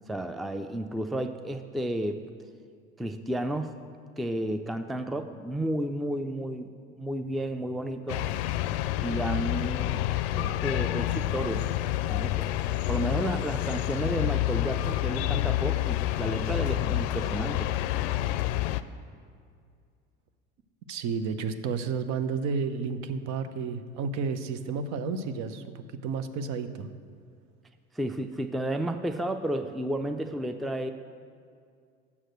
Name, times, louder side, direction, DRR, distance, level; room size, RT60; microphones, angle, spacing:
voice 1, 0.1-2.2 3.0-3.8 4.2-6.7 7.0-8.3 9.0-10.0 10.3-11.7 12.0-17.7 27.9-30.9, right 1 dB, ahead, 8 dB, 0.4 m, -32 dB
sound 1, 8.1-18.8, left 14 dB, 70° left, 0.5 m, -28 dB
voice 2, 20.9-26.9, right 5 dB, 60° right, 10 dB, 0.8 m, -31 dB
7.2 x 6.4 x 7.7 m, 2.3 s
hypercardioid pair, 75°, 32 cm